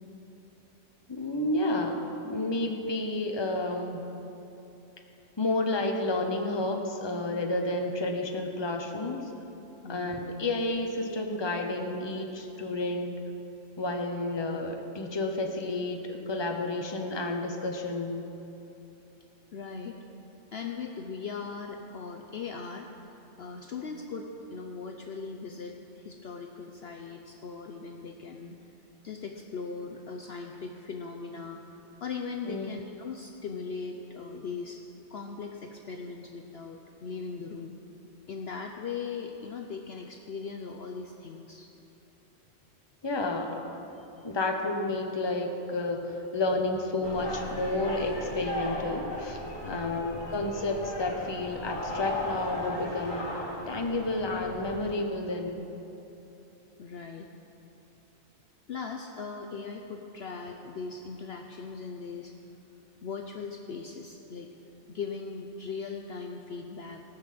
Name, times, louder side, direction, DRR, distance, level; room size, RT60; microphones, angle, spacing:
voice 1, 1.1-4.0 5.4-9.2 9.9-13.2 13.8-18.2 32.5-32.8 43.0-43.8 44.2-53.3 53.7-55.6, left 2 dB, 20° left, 3 dB, 1.0 m, -31 dB
voice 2, 9.8-10.3 19.5-20.0 20.5-28.6 29.0-34.8 35.1-37.8 38.3-41.7 44.0-44.3 49.6-50.1 56.8-57.3 58.7-62.3 63.0-64.5 64.9-67.0, left 5 dB, 55° left, 3 dB, 0.9 m, -39 dB
sound 1, 47.0-54.9, left 1 dB, 80° left, 3.3 m, -36 dB
18.0 x 6.2 x 7.6 m, 2.9 s
omnidirectional pair, 1.4 m